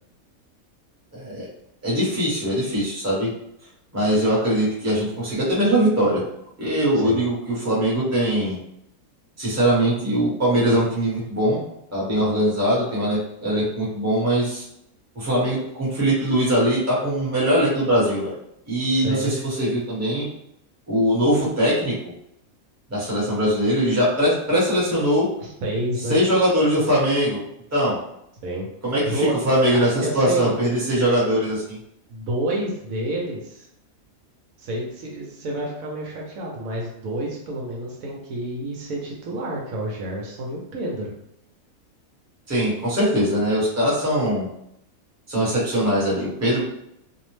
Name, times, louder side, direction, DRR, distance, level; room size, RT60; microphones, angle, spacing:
voice 1, 1.1-1.5 1.8-3.3 3.9-6.2 6.6-8.6 9.4-11.6 11.9-14.6 15.1-18.3 18.7-20.3 20.9-22.1 22.9-25.3 26.1-27.4 27.7-28.0 28.8-31.8 42.5-44.5 45.3-46.6, equal, 15° right, -8 dB, 0.8 m, -21 dB
voice 2, 18.9-19.4 25.4-26.2 28.4-28.7 29.0-29.4 29.7-30.6 32.1-33.7 34.6-41.1, right 1 dB, 75° right, -1 dB, 1.1 m, -29 dB
2.7 x 2.0 x 3.0 m, 0.78 s
omnidirectional pair, 1.5 m